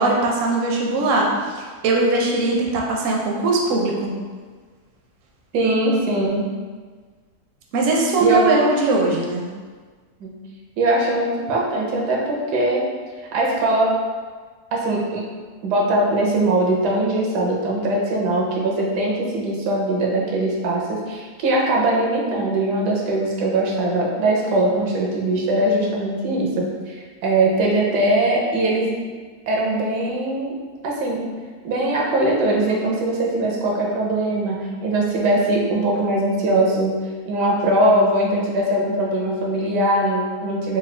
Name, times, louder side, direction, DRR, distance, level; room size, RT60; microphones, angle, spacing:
voice 1, 0.0-4.1 7.7-9.5, right 2 dB, 65° right, -1 dB, 0.8 m, -20 dB
voice 2, 5.5-6.5 8.2-8.4 10.2-10.4 10.8-12.8 13.3-13.9 14.7-15.3 15.6-28.9 29.5-30.6 30.8-31.3 31.6-37.0 37.3-40.8, right 1 dB, 85° right, -2 dB, 1.3 m, -21 dB
3.8 x 2.3 x 3.2 m, 1.5 s
omnidirectional pair, 1.7 m